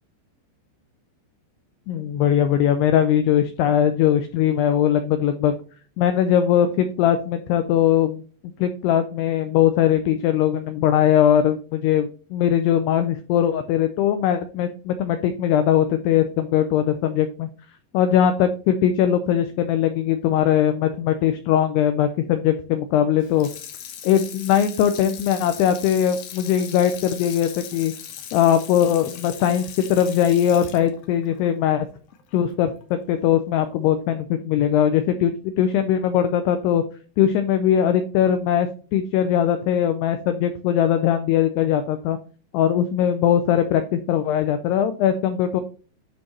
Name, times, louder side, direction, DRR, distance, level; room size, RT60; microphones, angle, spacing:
voice 1, 1.9-5.6 6.0-8.2 8.6-17.5 17.9-23.5 24.0-27.9 28.3-31.9 32.3-36.8 37.2-42.2 42.5-45.6, left 10 dB, 85° left, 9 dB, 2.3 m, -20 dB
Water tap faucet / Sink (filling or washing), 23.2-32.4 32.8-32.9, left 9 dB, 70° left, 2.4 m, -39 dB
10.5 x 4.5 x 3.1 m, 0.38 s
omnidirectional pair, 5.4 m